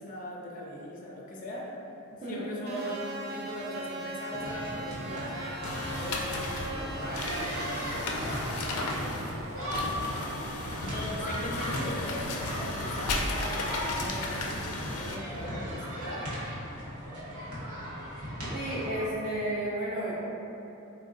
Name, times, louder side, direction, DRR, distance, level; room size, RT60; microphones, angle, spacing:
voice 1, 0.0-1.8 2.3-10.5 10.8-16.4, equal, 40° left, -3 dB, 0.5 m, -40 dB
sound 1, 2.7-12.8, right 2 dB, 45° right, 0.3 m, -41 dB
sound 2, 4.3-19.0, equal, 80° right, 1.1 m, -37 dB
sound 3, 5.6-15.2, left 2 dB, 90° left, 0.4 m, -35 dB
voice 2, 18.5-20.1, right 1 dB, 20° right, -14 dB, 0.7 m, -32 dB
3.5 x 2.2 x 3.9 m, 2.9 s
head